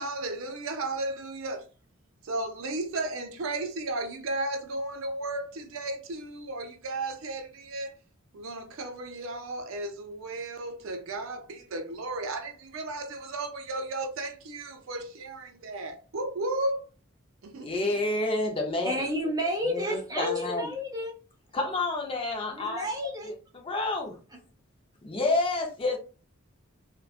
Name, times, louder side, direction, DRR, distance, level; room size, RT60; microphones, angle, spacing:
voice 1, 0.0-1.7 2.3-7.9 8.3-16.8 17.4-17.9, right 2 dB, 75° right, 0.4 m, -34 dB
voice 2, 17.6-19.1 19.6-20.7 21.5-23.1 23.5-24.2 25.0-26.0, left 2 dB, 25° left, 0.5 m, -29 dB
voice 3, 18.8-21.1 22.5-23.3, equal, 15° right, 0.7 m, -31 dB
2.6 x 2.2 x 2.3 m
head